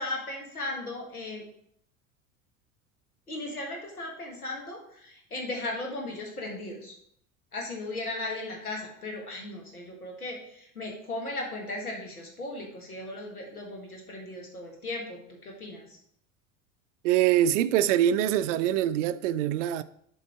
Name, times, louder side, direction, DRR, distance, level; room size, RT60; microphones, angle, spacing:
voice 1, 0.0-1.4 3.3-6.9 7.5-16.0, left 2 dB, 85° left, 1.7 m, -37 dB
voice 2, 17.0-19.8, right 11 dB, 55° right, 0.5 m, -24 dB
7.5 x 3.9 x 4.8 m
figure-of-eight pair, 75°, 43 cm